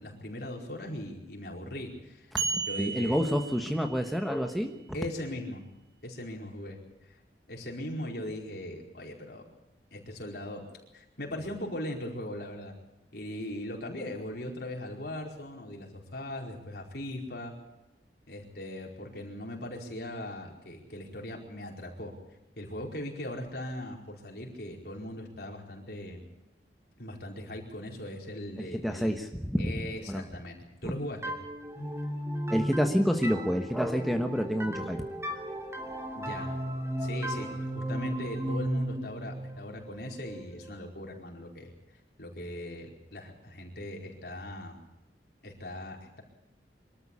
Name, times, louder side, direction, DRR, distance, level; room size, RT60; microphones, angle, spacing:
voice 1, 0.0-2.3 2.7-3.2 4.9-5.6 6.0-7.2 7.5-9.5 9.9-10.6 10.9-12.7 13.1-17.5 18.3-22.1 22.6-26.2 27.0-29.1 29.6-30.6 30.8-31.3 36.1-36.5 37.0-41.7 42.2-44.7 45.4-46.2, left 1 dB, 60° left, 0 dB, 4.8 m, -39 dB
sound 1, 2.4-4.2, right 5 dB, 80° right, 4.8 m, -34 dB
voice 2, 2.8-4.7 28.6-29.7 30.1-30.2 32.5-35.0, equal, ahead, 3 dB, 1.2 m, -28 dB
sound 2, 31.2-40.8, right 1 dB, 15° right, 3.1 m, -35 dB
24.0 x 13.5 x 8.6 m, 0.94 s
head